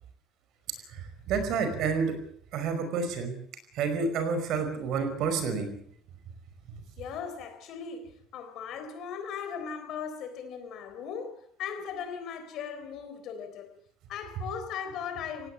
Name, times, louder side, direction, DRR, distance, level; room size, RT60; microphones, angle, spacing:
voice 1, 1.3-2.1 2.5-3.3 3.8-5.7, right 5 dB, 50° right, 5.3 m, -29 dB
voice 2, 7.0-13.7 14.1-15.5, left 7 dB, 45° left, 3.9 m, -38 dB
18.5 x 17.0 x 8.7 m
cardioid pair, 180°, 0 cm